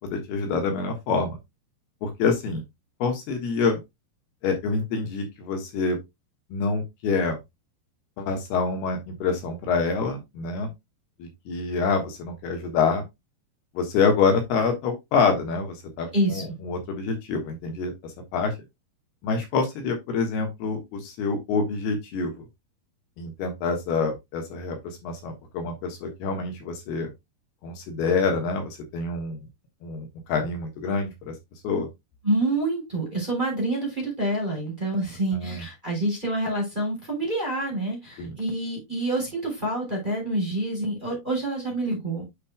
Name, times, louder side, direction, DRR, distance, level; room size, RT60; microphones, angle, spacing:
voice 1, 0.0-1.4 2.0-2.6 3.0-3.8 4.4-6.0 6.5-7.4 8.2-10.7 11.2-13.0 13.7-18.5 19.2-22.4 23.2-27.1 27.6-29.5 29.8-31.3 31.6-31.9 35.3-35.6 38.2-38.3, left 4 dB, 70° left, 3.3 m, -26 dB
voice 2, 16.1-16.4 32.2-42.2, right 1 dB, 10° right, 3.2 m, -27 dB
8.2 x 6.5 x 2.2 m
omnidirectional pair, 4.9 m